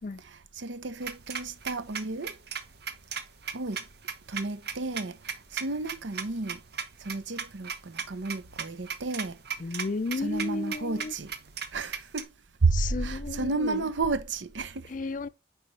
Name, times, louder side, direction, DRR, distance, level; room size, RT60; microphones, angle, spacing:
voice 1, 0.2-2.4 3.5-3.8 4.3-6.6 7.0-9.4 9.7-9.8 10.1-11.3 11.7-12.3 12.6-14.9, right 3 dB, 80° right, 0.8 m, -32 dB
sound 1, 1.0-12.2, right 7 dB, 60° right, 1.1 m, -36 dB
voice 2, 9.6-11.1 12.7-13.9 14.9-15.3, left 3 dB, 45° left, 0.4 m, -33 dB
9.2 x 4.9 x 3.2 m
head